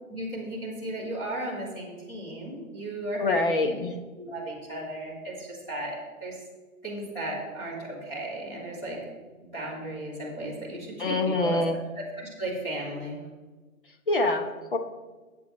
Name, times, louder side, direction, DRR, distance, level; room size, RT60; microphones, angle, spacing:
voice 1, 0.1-3.8 4.2-6.3 6.8-9.0 9.5-11.6 12.4-13.2, right 1 dB, 10° left, -10 dB, 2.9 m, -35 dB
voice 2, 3.2-3.9 11.0-11.8 14.1-14.8, left 2 dB, 35° left, 4 dB, 1.2 m, -25 dB
21.5 x 8.2 x 3.2 m, 1.3 s
hypercardioid pair, 175°, 44 cm